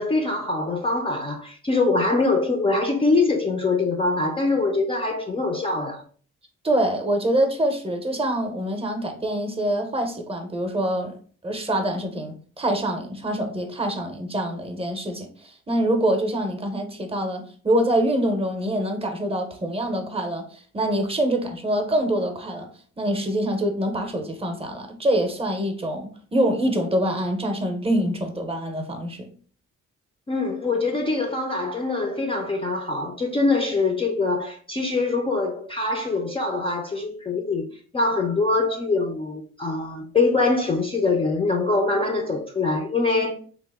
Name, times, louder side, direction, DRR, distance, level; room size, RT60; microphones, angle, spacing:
voice 1, 0.0-6.0 30.3-37.6 37.9-43.3, left 3 dB, 20° left, 0.4 m, -23 dB
voice 2, 6.6-11.2 11.4-22.7 23.0-29.3, right 1 dB, 20° right, 0.7 m, -25 dB
2.9 x 2.0 x 3.4 m
cardioid pair, 90°, 30 cm